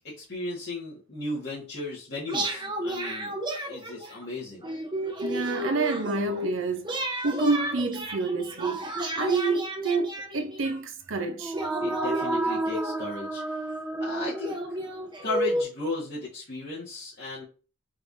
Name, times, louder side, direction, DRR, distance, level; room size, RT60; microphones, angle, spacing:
voice 1, 0.0-3.4 3.7-4.7 11.8-14.5 15.2-17.4, left 2 dB, 55° left, 2.0 m, -35 dB
sound 1, 2.3-4.2 4.6-6.5 6.8-10.7 11.5-13.2 13.9-14.0 14.4-15.6, right 1 dB, 25° right, 0.9 m, -32 dB
voice 2, 5.2-8.9 9.1-11.6, right 3 dB, 70° right, 0.8 m, -28 dB
sound 2, 11.3-15.1, right 2 dB, 5° right, 0.3 m, -32 dB
4.8 x 3.4 x 2.8 m
head